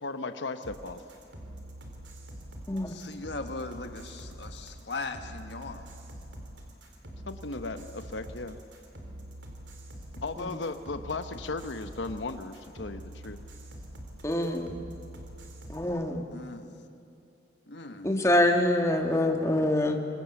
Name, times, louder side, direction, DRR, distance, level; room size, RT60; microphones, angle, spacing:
voice 1, 0.0-1.0 7.3-8.6 10.2-13.4, left 3 dB, 90° left, 8 dB, 1.0 m, -36 dB
sound 1, 0.6-15.8, right 1 dB, 85° right, 3.7 m, -45 dB
voice 2, 2.9-5.9 16.3-16.7 17.7-18.1, left 3 dB, 70° left, 7 dB, 1.5 m, -39 dB
voice 3, 14.2-14.8 15.7-16.3 18.0-20.0, left 1 dB, 15° left, 3 dB, 1.7 m, -25 dB
24.5 x 24.0 x 7.2 m, 2.7 s
head